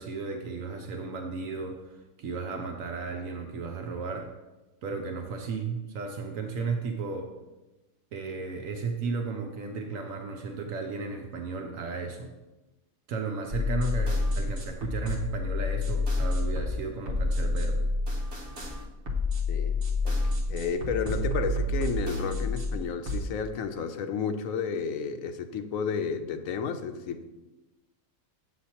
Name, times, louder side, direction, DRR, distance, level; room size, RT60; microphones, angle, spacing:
voice 1, 0.0-4.3 4.8-7.3 8.1-12.3 13.1-17.8, right 4 dB, 75° right, 4 dB, 1.1 m, -34 dB
sound 1, 13.5-23.2, left 2 dB, 55° right, 1.5 m, -29 dB
voice 2, 19.5-19.8 20.0-20.2 20.5-27.2, left 6 dB, 80° left, 8 dB, 1.0 m, -31 dB
8.3 x 7.7 x 2.9 m, 1.1 s
omnidirectional pair, 1.4 m